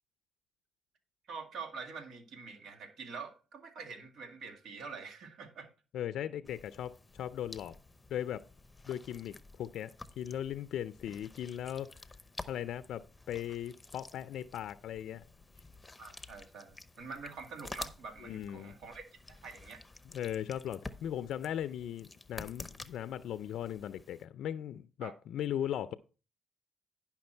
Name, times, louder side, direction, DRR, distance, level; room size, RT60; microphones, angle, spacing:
voice 1, 1.3-5.7 16.0-19.8 25.0-25.1, right 4 dB, 70° right, 2.0 m, -46 dB
voice 2, 5.9-7.7 8.1-8.4 8.9-12.0 12.5-15.3 18.2-18.7 20.1-25.9, left 10 dB, 75° left, 0.4 m, -38 dB
sound 1, 6.4-24.2, left 2 dB, 15° left, 0.8 m, -51 dB
10.5 x 5.8 x 4.4 m
cardioid pair, 90°, 0 cm